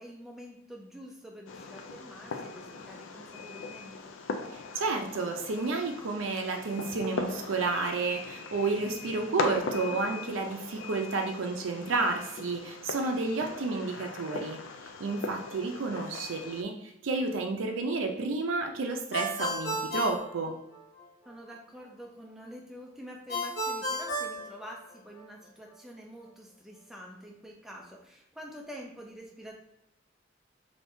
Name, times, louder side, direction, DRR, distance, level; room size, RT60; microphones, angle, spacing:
voice 1, 0.0-4.1 9.8-10.0 21.3-29.5, equal, ahead, -1 dB, 0.5 m, -47 dB
Fireworks, 1.5-16.6, left 4 dB, 75° left, 0.4 m, -39 dB
voice 2, 4.5-14.6 15.0-20.5, right 3 dB, 90° right, 3 dB, 0.5 m, -31 dB
Ringtone, 19.1-21.1 23.3-25.3, equal, 55° left, 0.9 m, -33 dB
3.5 x 2.7 x 2.6 m, 0.80 s
head